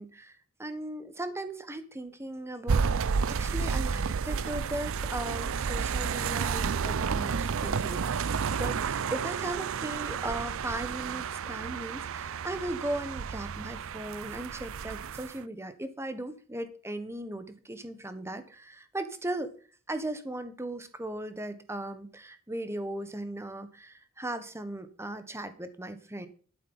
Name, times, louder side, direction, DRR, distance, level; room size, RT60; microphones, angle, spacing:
voice 1, 0.0-2.9 3.3-19.5 19.9-26.3, right 1 dB, 10° right, 10 dB, 1.4 m, -37 dB
sound 1, 2.7-15.4, right 6 dB, 65° right, 0.5 m, -31 dB
11.5 x 8.7 x 5.6 m, 0.40 s
head